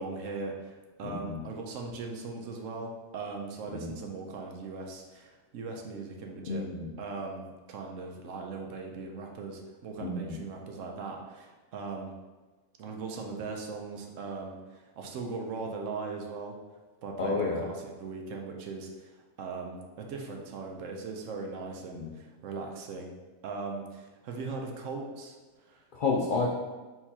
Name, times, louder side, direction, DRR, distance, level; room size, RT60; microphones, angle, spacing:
voice 1, 0.0-6.7 7.0-12.1 12.8-16.6 17.0-23.1 23.4-25.4 25.6-25.8, right 4 dB, 70° right, 1 dB, 0.9 m, -39 dB
voice 2, 1.0-1.4 3.7-4.0 6.5-6.9 10.0-10.4 17.2-17.7 21.9-22.1 25.9-26.5, left 4 dB, 70° left, -1 dB, 0.4 m, -30 dB
4.3 x 3.9 x 2.8 m, 1.2 s
omnidirectional pair, 1.4 m